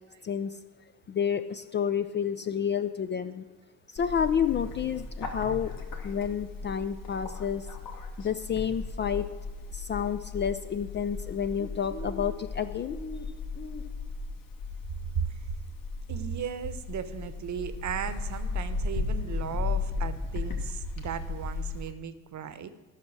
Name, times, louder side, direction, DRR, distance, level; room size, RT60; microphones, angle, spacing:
voice 1, 0.2-0.6 1.1-3.4 3.9-5.7 6.0-7.7 8.2-9.3 9.7-13.0, left 8 dB, 25° left, 11 dB, 0.4 m, -30 dB
Bird, 4.0-21.9, left 4 dB, 45° left, 1.9 m, -36 dB
voice 2, 15.1-15.6 16.1-22.7, right 8 dB, 40° right, 12 dB, 1.0 m, -36 dB
13.5 x 6.1 x 6.2 m, 1.3 s
figure-of-eight pair, 50°, 45 cm